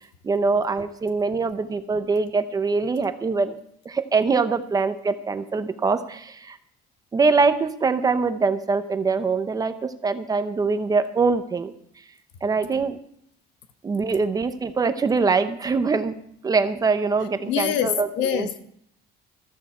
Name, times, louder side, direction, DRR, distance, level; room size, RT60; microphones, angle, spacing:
voice 1, 0.2-3.6 3.8-6.6 7.1-11.7 12.4-13.0 13.8-16.1 16.4-18.5, right 4 dB, 20° right, 0.7 m, -23 dB
voice 2, 17.4-18.6, left 9 dB, 80° left, 1.3 m, -25 dB
14.0 x 13.5 x 4.4 m
cardioid pair, 165°, 18 cm